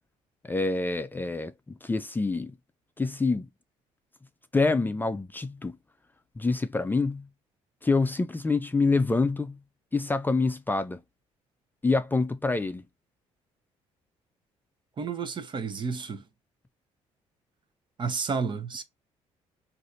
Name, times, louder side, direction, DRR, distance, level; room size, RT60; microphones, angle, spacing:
voice 1, 0.5-2.5 3.0-3.5 4.5-5.8 6.4-7.2 7.8-9.6 9.9-11.0 11.8-12.8, left 3 dB, 15° left, 0.5 m, -26 dB
voice 2, 15.0-16.2 18.0-18.8, right 5 dB, 40° right, 0.8 m, -31 dB
3.8 x 2.6 x 2.5 m
cardioid pair, 85°, 12 cm